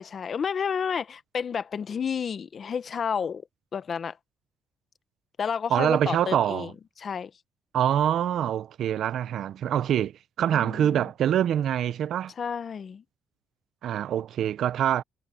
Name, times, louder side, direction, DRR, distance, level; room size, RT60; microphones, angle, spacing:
voice 1, 0.0-3.5 3.7-4.2 5.4-6.7 7.0-7.3 10.5-11.1 12.4-13.0, left 7 dB, 50° left, 1.2 m, -31 dB
voice 2, 5.7-6.7 7.7-12.3 13.8-15.0, right 10 dB, 70° right, 0.8 m, -25 dB
cardioid pair, 90°, 0 cm